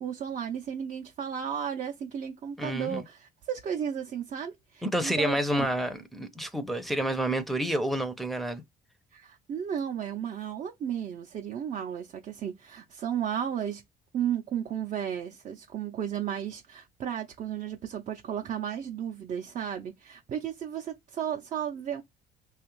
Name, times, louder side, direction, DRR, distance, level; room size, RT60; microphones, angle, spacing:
voice 1, 0.0-5.7 9.1-13.8 14.1-22.0, right 9 dB, 45° right, 0.5 m, -34 dB
voice 2, 2.6-3.0 4.8-8.6, right 1 dB, ahead, 0.5 m, -29 dB
3.2 x 2.4 x 3.0 m
cardioid pair, 110°, 17 cm